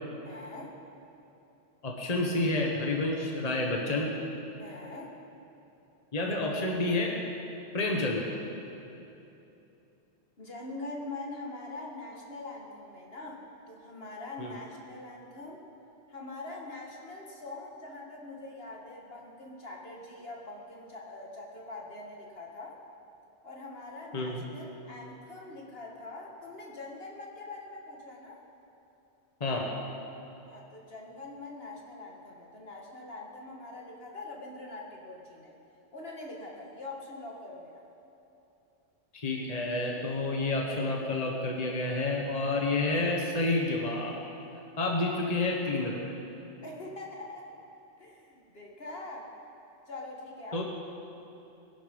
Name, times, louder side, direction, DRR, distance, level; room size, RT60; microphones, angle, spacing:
voice 1, 0.2-0.7 4.6-5.1 10.4-13.4 13.7-15.6 16.1-22.8 23.4-28.4 30.5-35.5 35.9-37.8 45.1-45.2 46.6-47.5 48.0-49.3 49.9-50.6, left 2 dB, 60° left, -1 dB, 2.0 m, -43 dB
voice 2, 1.8-4.1 6.1-7.2 7.7-8.2 14.4-14.5 24.1-24.4 29.4-29.7 39.1-44.2 44.8-46.1 50.5-50.6, left 2 dB, 35° left, 0 dB, 1.5 m, -29 dB
21.0 x 11.0 x 5.4 m, 2.9 s
omnidirectional pair, 1.2 m